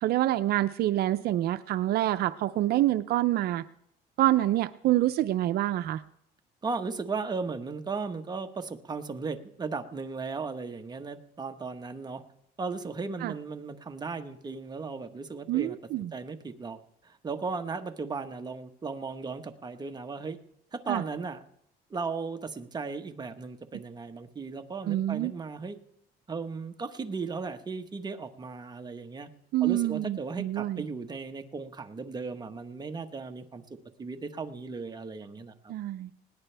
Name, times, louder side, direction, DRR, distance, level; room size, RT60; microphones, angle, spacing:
voice 1, 0.0-3.6 4.2-6.0 13.2-13.3 15.5-16.1 20.9-21.0 24.9-25.3 29.5-30.8 35.7-36.1, right 14 dB, 70° right, 11 dB, 0.5 m, -26 dB
voice 2, 6.6-12.2 12.6-15.8 16.1-16.8 17.0-20.4 20.7-21.4 21.9-25.8 26.3-29.3 29.6-33.6 34.0-35.7, right 4 dB, 25° right, 6 dB, 1.3 m, -36 dB
20.0 x 17.5 x 3.4 m, 0.78 s
cardioid pair, 110°, 17 cm